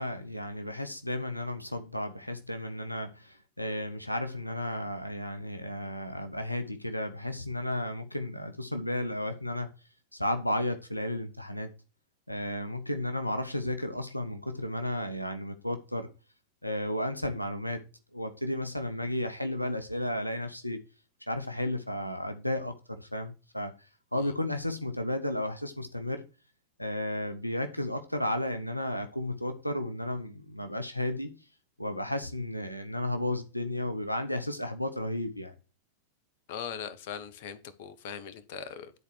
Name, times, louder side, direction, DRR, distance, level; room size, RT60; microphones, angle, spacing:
voice 1, 0.0-9.7 10.1-11.7 12.3-16.1 16.6-17.8 18.1-20.8 21.3-23.7 24.1-26.2 26.8-31.3 31.8-35.5, left 1 dB, 90° left, 0.9 m, -33 dB
voice 2, 36.5-38.9, left 7 dB, 50° left, 1.1 m, -40 dB
10.5 x 4.4 x 6.4 m
figure-of-eight pair, 90°, 0 cm